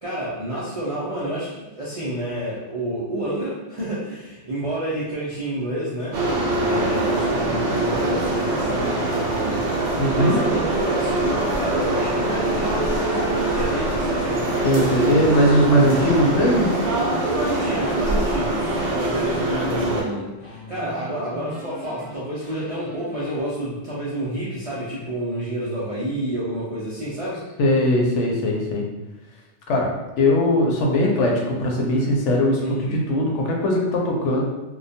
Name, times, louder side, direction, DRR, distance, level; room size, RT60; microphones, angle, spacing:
voice 1, 0.0-6.2 6.6-15.3 17.2-27.4 32.6-33.0, right 1 dB, 55° right, -9 dB, 0.4 m, -29 dB
sound 1, 6.1-20.0, right 2 dB, 70° right, 0.9 m, -23 dB
voice 2, 10.0-10.4 14.6-16.7 27.6-28.8 29.7-29.9 30.2-34.4, left 1 dB, 75° left, -1 dB, 0.9 m, -20 dB
sound 2, 10.1-13.4 13.7-23.4, left 1 dB, 35° left, 0.5 m, -40 dB
2.2 x 2.2 x 2.7 m, 1.1 s
omnidirectional pair, 1.2 m